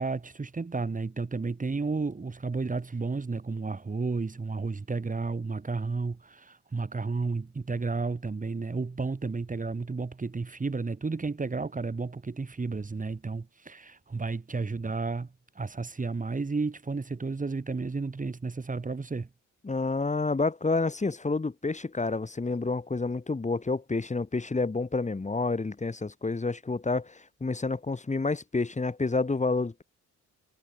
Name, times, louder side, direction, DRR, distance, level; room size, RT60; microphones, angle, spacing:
voice 1, 0.0-19.3, right 4 dB, 25° right, 6.0 m, -32 dB
voice 2, 19.6-29.8, left 3 dB, 25° left, 7.1 m, -29 dB
cardioid pair, 90°, 30 cm